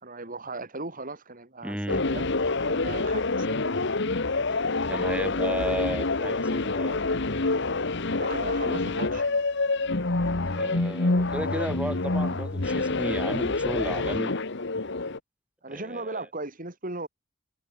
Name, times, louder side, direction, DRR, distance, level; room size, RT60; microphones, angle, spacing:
voice 1, 0.0-2.3 2.6-3.7 6.6-6.8 8.2-9.4 15.6-17.1, right 2 dB, 40° right, 4.3 m, -37 dB
voice 2, 1.6-2.0 4.9-7.0 10.5-14.3 15.7-16.3, equal, 5° right, 4.3 m, -33 dB
sound 1, 1.9-15.2, left 3 dB, 60° left, 1.4 m, -27 dB
head